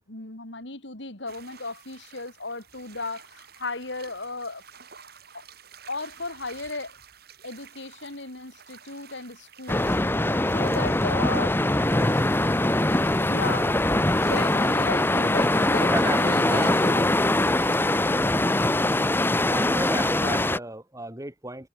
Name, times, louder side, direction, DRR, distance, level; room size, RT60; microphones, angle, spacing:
voice 1, 0.0-4.6 5.3-5.4 5.9-7.0 7.4-10.2 10.5-11.6 13.1-13.8 14.1-17.2 20.2-20.5, left 3 dB, 65° left, 3.6 m, -35 dB
sound 1, 1.3-17.8, right 7 dB, 55° right, 7.9 m, -50 dB
sound 2, 9.7-20.6, left 1 dB, 10° left, 0.9 m, -22 dB
voice 2, 11.9-12.2 15.7-16.8 19.4-21.7, right 1 dB, 15° right, 1.8 m, -33 dB
head